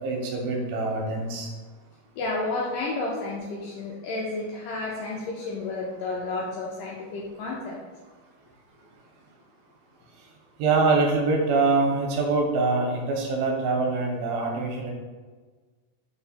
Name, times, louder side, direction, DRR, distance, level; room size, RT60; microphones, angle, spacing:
voice 1, 0.0-1.5 10.6-14.9, right 3 dB, 85° right, 1 dB, 2.5 m, -24 dB
voice 2, 2.2-7.8, left 2 dB, 85° left, -4 dB, 1.9 m, -31 dB
5.6 x 2.3 x 4.0 m, 1.4 s
omnidirectional pair, 4.3 m